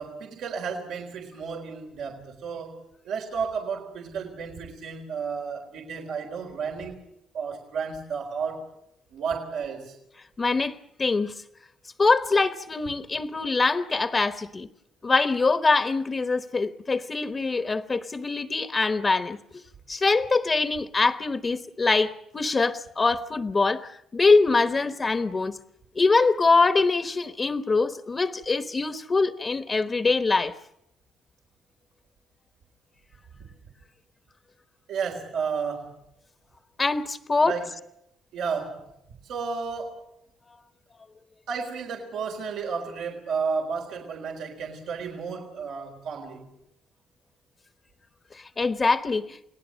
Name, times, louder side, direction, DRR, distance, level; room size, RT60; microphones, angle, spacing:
voice 1, 0.0-2.8 3.0-7.0 7.3-8.6 9.1-10.0 34.9-35.9 37.4-37.7 38.3-38.9 39.2-40.0 41.5-46.5, right 5 dB, 85° right, 2 dB, 3.9 m, -32 dB
voice 2, 10.4-11.3 12.0-14.7 15.0-19.6 19.9-25.6 25.9-30.5 36.8-37.5 48.4-49.4, left 3 dB, 30° left, 8 dB, 1.1 m, -23 dB
29.5 x 19.0 x 6.4 m, 0.81 s
cardioid pair, 90°, 0 cm